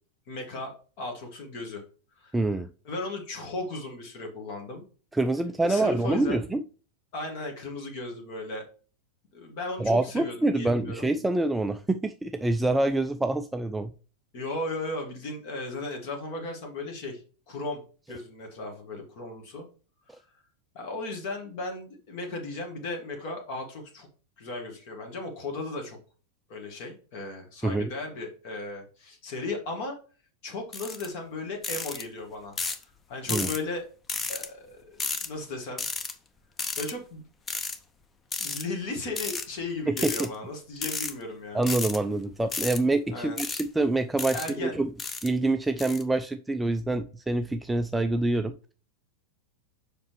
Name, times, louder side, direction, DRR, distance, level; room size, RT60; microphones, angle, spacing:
voice 1, 0.3-1.8 2.2-2.5 2.8-4.8 5.6-6.4 7.1-8.6 9.3-11.1 14.3-17.2 17.5-17.8 18.1-19.6 20.1-20.2 20.7-24.1 24.4-26.0 26.5-30.0 30.4-32.6 33.1-33.8 34.3-35.8 36.8-37.2 38.4-41.6 43.1-43.4 44.3-44.8, left 2 dB, 45° left, 3 dB, 1.7 m, -36 dB
voice 2, 2.3-2.7 5.1-6.6 9.8-13.9 27.6-27.9 33.3-33.5 39.9-40.3 41.5-44.9 45.2-48.7, right 2 dB, 10° right, 8 dB, 0.3 m, -26 dB
sound 1, 30.7-31.1 31.6-32.0 32.6-32.8 33.3-33.6 34.1-34.5 35.0-35.3 35.8-36.1 36.6-36.9 37.5-37.8 38.3-38.6 39.2-39.5 40.0-40.3 40.8-41.1 41.6-42.0 42.5-42.8 43.4-43.6 44.2-44.5 45.0-45.3 45.8-46.0, left 4 dB, 20° left, 0.8 m, -32 dB
7.1 x 5.1 x 3.1 m, 0.38 s
figure-of-eight pair, 90°, 0 cm